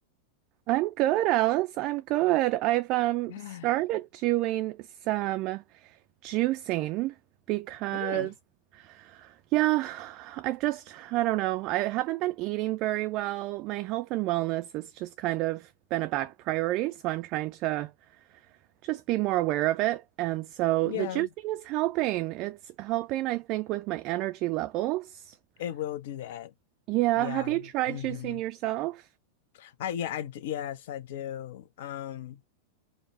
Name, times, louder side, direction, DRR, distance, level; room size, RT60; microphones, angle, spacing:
voice 1, 0.7-3.3 3.6-6.0 6.2-7.1 7.5-8.3 8.7-17.9 18.8-25.4 26.9-29.1, right 17 dB, 40° right, 0.3 m, -29 dB
voice 2, 3.3-3.7 7.9-8.3 20.8-21.3 25.6-26.5 27.1-28.4 29.5-32.4, left 11 dB, 55° left, 0.6 m, -36 dB
5.0 x 2.2 x 4.2 m
figure-of-eight pair, 90°, 0 cm